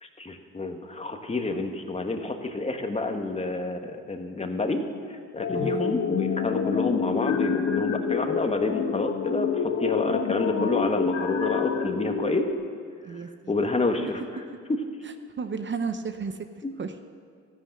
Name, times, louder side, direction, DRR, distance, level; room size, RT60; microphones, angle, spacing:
voice 1, 0.0-12.5 13.5-14.2 16.6-16.7, left 2 dB, 20° left, 5 dB, 1.5 m, -29 dB
sound 1, 5.4-12.5, left 7 dB, 60° left, 1.3 m, -28 dB
voice 2, 5.5-5.9 13.0-13.5 15.0-16.5 16.8-17.0, right 5 dB, 40° right, 8 dB, 0.8 m, -33 dB
13.5 x 11.5 x 7.8 m, 2.1 s
cardioid pair, 90°, 30 cm